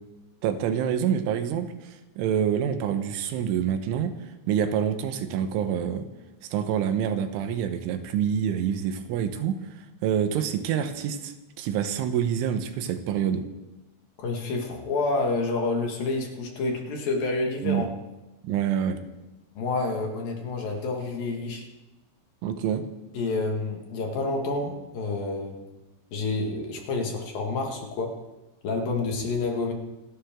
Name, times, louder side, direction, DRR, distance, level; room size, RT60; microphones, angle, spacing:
voice 1, 0.4-1.7 2.2-4.1 4.5-6.1 6.5-9.6 10.0-13.4 17.6-17.9 18.4-19.0 22.4-22.8, right 8 dB, 90° right, 8 dB, 3.6 m, -26 dB
voice 2, 14.2-17.9 19.6-21.6 23.1-25.6 26.1-28.1 28.6-29.7, left 3 dB, 55° left, 1 dB, 3.3 m, -28 dB
27.5 x 12.0 x 3.8 m, 1.0 s
omnidirectional pair, 5.4 m